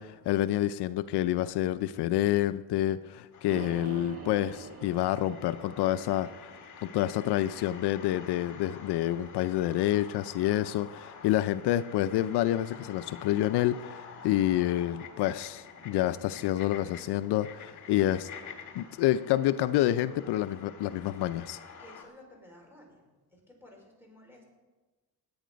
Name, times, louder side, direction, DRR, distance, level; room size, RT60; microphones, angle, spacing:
voice 1, 0.0-6.3 6.8-18.3 18.7-21.6, left 13 dB, 80° left, 13 dB, 0.6 m, -28 dB
sound 1, 3.3-22.0, left 6 dB, 45° left, 2.1 m, -49 dB
sound 2, 3.5-7.6, right 5 dB, 35° right, 1.6 m, -46 dB
voice 2, 21.8-23.0 23.3-24.5, left 1 dB, 5° right, 0 dB, 4.7 m, -54 dB
19.5 x 8.6 x 5.1 m, 1.2 s
cardioid pair, 105°, 39 cm